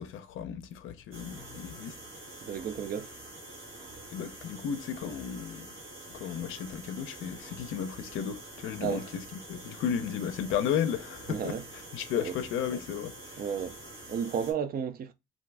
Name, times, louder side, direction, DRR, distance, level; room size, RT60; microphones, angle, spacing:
voice 1, 0.0-2.0 4.1-5.7 6.1-11.6 11.9-13.4, left 8 dB, 85° left, 0.5 m, -34 dB
sound 1, 1.1-14.5, right 2 dB, 85° right, 1.1 m, -46 dB
voice 2, 2.4-3.1 8.8-9.1 11.3-11.6 12.1-12.3 13.4-13.8 14.1-15.1, right 7 dB, 50° right, 0.4 m, -33 dB
2.5 x 2.5 x 3.2 m
cardioid pair, 90°, 20 cm